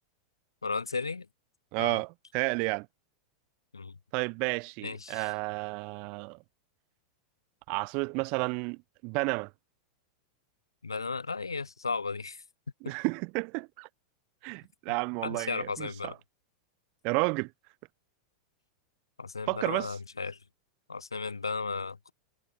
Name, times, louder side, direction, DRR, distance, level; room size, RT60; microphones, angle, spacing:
voice 1, 0.6-1.3 1.8-2.0 3.7-3.9 4.8-5.3 10.8-12.4 15.2-16.1 19.2-20.4 20.9-22.1, left 4 dB, 80° left, 0.4 m, -35 dB
voice 2, 1.7-2.9 4.1-6.4 7.7-9.5 12.8-13.9 14.4-16.1 17.0-17.5 19.5-19.9, right 31 dB, 45° right, 1.1 m, -31 dB
figure-of-eight pair, 90°, 2 cm